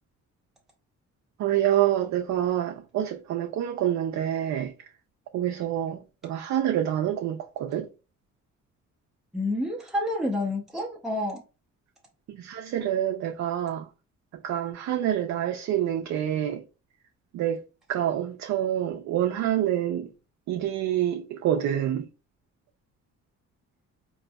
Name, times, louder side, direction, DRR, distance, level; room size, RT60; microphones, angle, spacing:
voice 1, 1.4-4.7 5.3-7.9 12.3-13.9 14.4-16.6 17.3-17.6 17.9-20.1 20.5-22.1, right 11 dB, 65° right, 0.5 m, -27 dB
voice 2, 9.3-11.4, left 1 dB, ahead, 0.6 m, -29 dB
3.8 x 2.6 x 2.2 m
cardioid pair, 90°, 30 cm